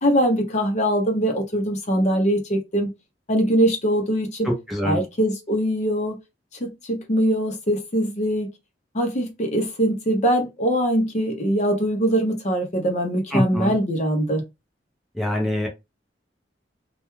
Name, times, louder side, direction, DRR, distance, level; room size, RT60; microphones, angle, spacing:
voice 1, 0.0-2.9 3.3-4.5 4.8-6.2 6.6-8.5 8.9-14.4, equal, 40° left, 0.6 m, -22 dB
voice 2, 4.4-5.0 13.3-13.7 15.2-15.7, equal, ahead, 0.5 m, -24 dB
2.2 x 2.2 x 3.0 m
head